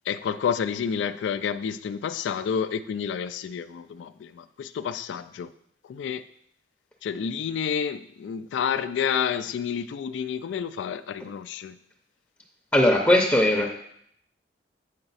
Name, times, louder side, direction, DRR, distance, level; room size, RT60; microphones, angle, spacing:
voice 1, 0.1-5.5 5.8-6.2 7.0-11.8, left 7 dB, 90° left, 0.3 m, -29 dB
voice 2, 12.7-13.7, left 1 dB, 10° left, 0.6 m, -19 dB
7.8 x 4.9 x 4.0 m
head